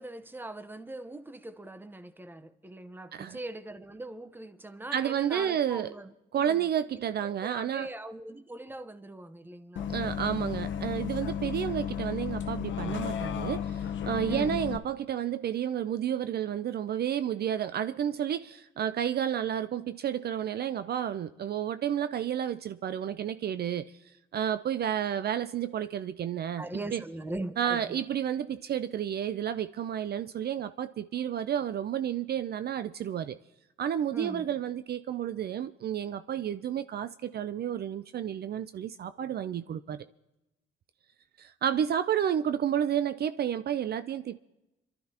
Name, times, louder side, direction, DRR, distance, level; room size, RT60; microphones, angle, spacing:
voice 1, 0.0-6.1 6.4-6.6 7.4-9.9 14.3-14.6 26.6-28.0 34.1-34.4, right 2 dB, 10° right, 0.9 m, -41 dB
voice 2, 4.9-5.9 6.3-7.9 9.9-23.9 24.3-27.0 27.6-33.4 33.8-40.1 41.4-44.4, right 9 dB, 55° right, 0.5 m, -31 dB
Bus, 9.8-14.8, left 8 dB, 70° left, 0.9 m, -33 dB
26.5 x 12.5 x 2.9 m
cardioid pair, 90°, 20 cm